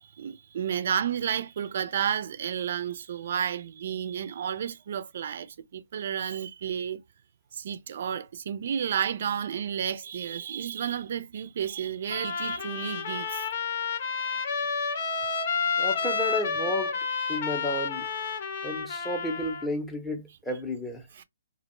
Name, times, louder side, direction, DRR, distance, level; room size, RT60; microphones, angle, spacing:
voice 1, 0.0-7.0 7.5-13.7 21.2-21.3, right 8 dB, 55° right, 0.4 m, -31 dB
Trumpet, 12.1-19.7, left 5 dB, 45° left, 0.7 m, -30 dB
voice 2, 15.8-17.0 17.3-18.1 18.6-21.1, left 1 dB, 5° left, 0.6 m, -32 dB
2.4 x 2.1 x 3.0 m
hypercardioid pair, 140°, 0 cm